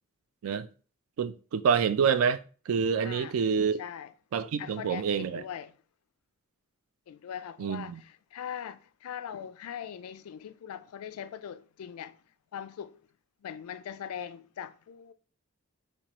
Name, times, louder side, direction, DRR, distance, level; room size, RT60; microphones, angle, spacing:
voice 1, 1.2-2.4 2.7-3.8 4.3-5.4 7.6-8.0, right 6 dB, 70° right, 0.3 m, -27 dB
voice 2, 3.0-3.4 3.8-4.1 4.6-5.8 7.1-12.2 12.5-13.0 13.4-15.1, left 8 dB, 90° left, 0.3 m, -41 dB
4.4 x 2.3 x 2.9 m
head